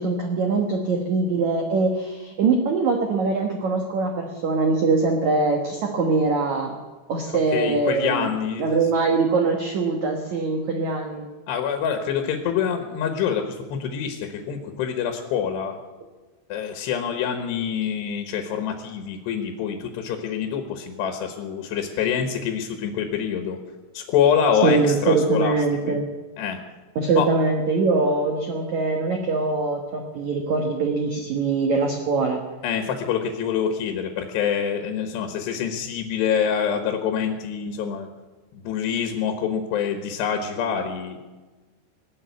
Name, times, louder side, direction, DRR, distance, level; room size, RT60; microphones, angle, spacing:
voice 1, 0.0-6.7 7.1-8.3 8.6-11.3 24.6-26.1 27.0-32.4, right 3 dB, 70° right, 2 dB, 1.8 m, -22 dB
voice 2, 7.2-8.8 11.5-15.8 16.5-23.6 23.9-25.5 25.9-26.0 26.4-26.6 27.2-27.3 32.6-38.1 38.5-41.2, left 7 dB, 70° left, 6 dB, 3.1 m, -26 dB
20.0 x 7.7 x 9.3 m, 1.3 s
omnidirectional pair, 5.4 m